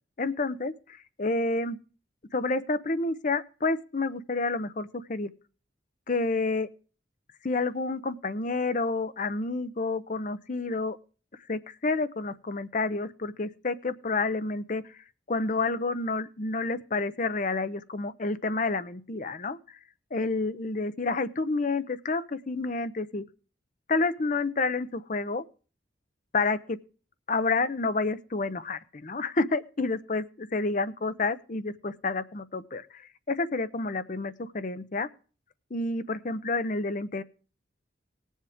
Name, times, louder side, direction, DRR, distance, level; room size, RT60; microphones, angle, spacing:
voice 1, 0.2-1.8 2.3-5.3 6.1-6.7 7.4-11.0 11.5-14.9 15.3-19.8 20.1-23.2 23.9-25.4 26.3-26.8 27.3-35.1 35.7-37.2, left 3 dB, 40° left, 13 dB, 0.7 m, -29 dB
19.5 x 7.3 x 3.5 m, 0.37 s
head